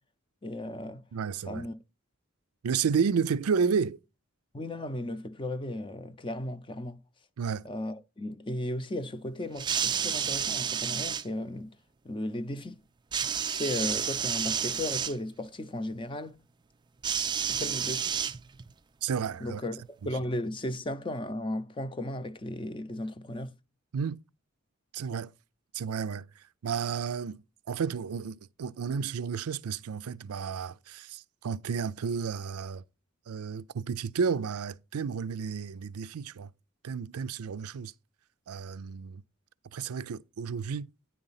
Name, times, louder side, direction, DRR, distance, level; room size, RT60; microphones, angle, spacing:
voice 1, 0.4-1.0 1.5-1.8 4.5-7.0 7.6-11.7 12.0-12.8 13.4-16.4 17.5-18.2 19.4-19.8 20.0-23.5, left 1 dB, 25° left, 0.6 m, -35 dB
voice 2, 1.1-1.7 2.6-4.0 7.4-7.7 19.0-19.6 23.9-24.2 24.9-25.3 25.7-32.8 33.3-36.5 36.8-37.9 38.5-39.2 39.7-40.9, right 6 dB, 90° right, 0.5 m, -32 dB
sound 1, 9.6-11.2 13.1-15.2 17.0-18.7 19.7-19.8, right 7 dB, 20° right, 0.3 m, -30 dB
9.7 x 3.9 x 5.6 m
head